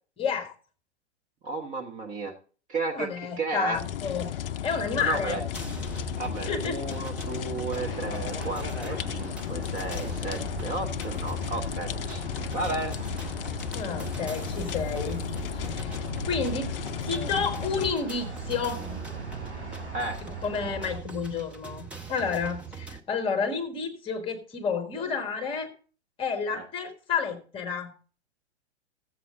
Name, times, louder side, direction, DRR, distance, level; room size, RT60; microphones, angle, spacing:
voice 1, 0.2-0.5 2.9-4.3 4.6-5.4 6.4-6.8 13.7-15.3 15.5-16.7 17.0-18.9 20.2-25.7 26.2-27.9, left 5 dB, 15° left, 6 dB, 1.5 m, -30 dB
voice 2, 1.4-2.3 2.7-3.1 3.4-3.8 5.0-5.4 6.2-12.2 12.5-13.0 19.9-20.2 26.5-26.6, right 3 dB, 20° right, 3 dB, 1.1 m, -33 dB
sound 1, 3.7-17.9, left 10 dB, 55° left, 0.5 m, -34 dB
sound 2, 5.5-23.0, right 6 dB, 5° right, 0.5 m, -41 dB
sound 3, 7.7-21.0, right 2 dB, 45° right, 6.6 m, -40 dB
14.0 x 7.7 x 3.7 m, 0.39 s
figure-of-eight pair, 115°, 34 cm